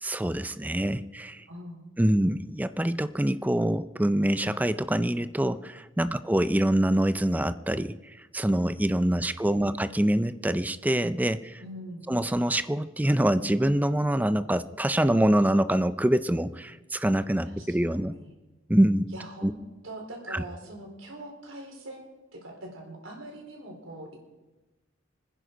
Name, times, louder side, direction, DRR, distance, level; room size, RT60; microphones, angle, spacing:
voice 1, 0.0-1.5 2.0-11.6 12.1-18.1 18.7-19.1 19.4-19.5 20.3-20.4, right 1 dB, 10° right, 14 dB, 0.4 m, -25 dB
voice 2, 1.5-1.9 6.0-6.1 9.4-9.8 11.6-12.0 17.4-18.3 19.1-19.6 19.8-24.2, right 1 dB, 80° right, 1 dB, 4.2 m, -43 dB
24.5 x 10.0 x 5.2 m, 1.1 s
head